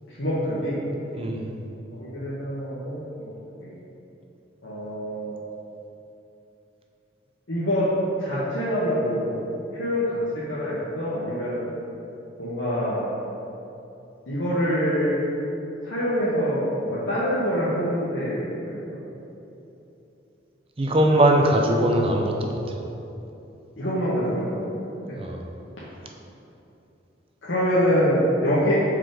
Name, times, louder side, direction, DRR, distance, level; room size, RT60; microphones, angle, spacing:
voice 1, 0.1-0.8 1.9-3.3 3.6-3.7 4.6-5.4 7.5-7.9 8.2-9.5 9.7-11.7 12.4-13.1 14.3-15.2 15.8-19.0 23.8-24.7 27.4-28.8, equal, 85° left, -10 dB, 1.1 m, -25 dB
voice 2, 20.8-22.8 25.2-25.4, right 1 dB, 30° right, 1 dB, 0.6 m, -21 dB
6.4 x 4.7 x 3.8 m, 2.9 s
head